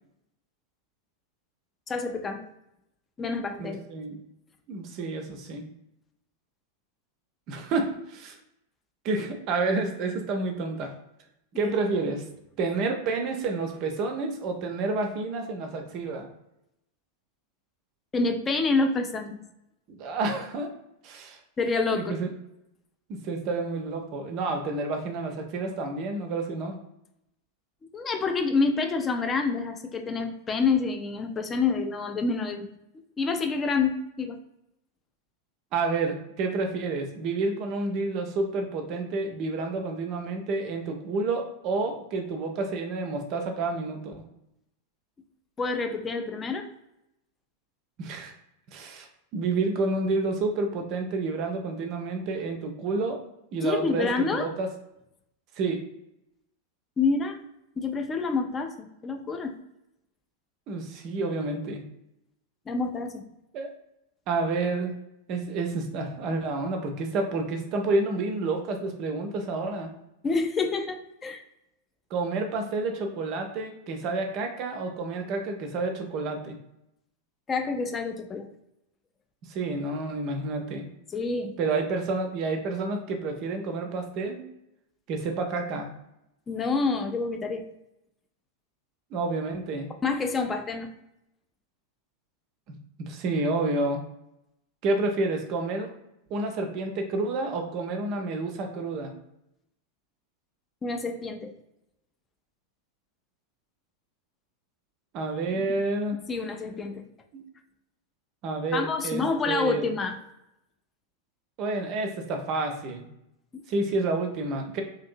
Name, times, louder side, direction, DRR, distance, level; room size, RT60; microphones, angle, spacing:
voice 1, 1.9-2.4 3.2-3.8 11.6-11.7 18.1-19.4 21.6-22.2 27.9-32.7 33.2-34.4 45.6-46.7 53.6-54.4 57.0-57.4 57.8-58.7 59.0-59.6 62.7-63.3 70.2-71.4 77.5-78.5 81.1-81.6 86.5-87.7 90.0-90.9 100.8-101.5 105.5-105.7 106.3-107.1 108.7-110.2 113.5-113.6, left 4 dB, 20° left, 5 dB, 0.3 m, -27 dB
voice 2, 3.6-4.2 4.7-5.7 7.5-8.4 9.0-10.9 11.6-12.2 12.6-16.3 19.9-20.7 21.0-21.4 21.9-22.3 23.1-26.8 35.7-44.1 48.0-48.3 48.7-49.1 49.3-53.2 53.5-54.7 55.6-55.8 60.7-61.8 63.5-63.7 64.3-65.0 65.3-69.9 72.1-76.6 79.4-80.9 81.6-84.4 85.1-85.9 89.1-89.9 93.0-94.0 94.8-95.9 96.3-99.2 105.1-106.2 107.3-107.4 108.4-109.9 111.6-113.1 113.7-114.8, right 3 dB, 40° right, 4 dB, 0.5 m, -29 dB
2.8 x 2.6 x 2.5 m, 0.84 s
figure-of-eight pair, 90°, 0 cm